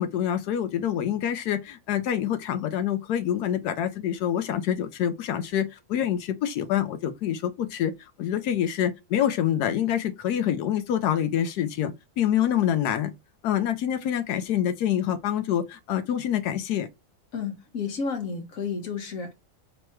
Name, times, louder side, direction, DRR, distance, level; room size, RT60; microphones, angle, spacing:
voice 1, 0.0-7.9 8.2-13.1 13.4-16.9, left 10 dB, 75° left, 1.1 m, -26 dB
voice 2, 17.3-19.3, left 5 dB, 55° left, 1.4 m, -31 dB
3.3 x 3.0 x 4.4 m
omnidirectional pair, 1.8 m